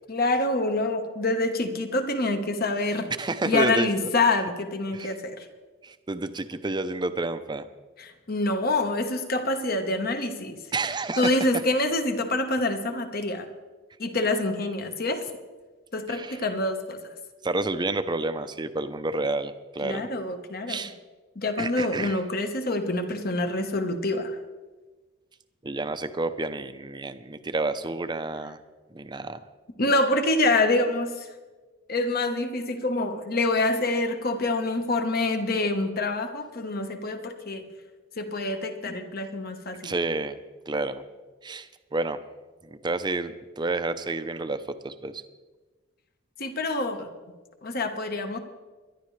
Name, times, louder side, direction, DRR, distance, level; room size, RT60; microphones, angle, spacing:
voice 1, 0.1-3.1 3.4-5.4 8.0-10.6 11.2-13.5 14.0-15.2 15.9-17.0 19.8-20.8 21.3-24.4 29.8-31.3 31.9-37.6 38.2-40.0 46.4-47.1 47.6-48.4, left 2 dB, 50° left, 6 dB, 1.2 m, -26 dB
voice 2, 3.2-4.1 4.9-5.2 5.8-7.6 10.7-11.5 16.1-16.5 17.4-20.1 20.7-20.9 21.6-22.2 25.6-28.6 28.9-29.4 39.8-40.4 40.7-41.0 41.4-42.2 42.6-45.1, right 2 dB, 25° right, 10 dB, 0.6 m, -30 dB
23.0 x 11.0 x 3.3 m, 1.3 s
head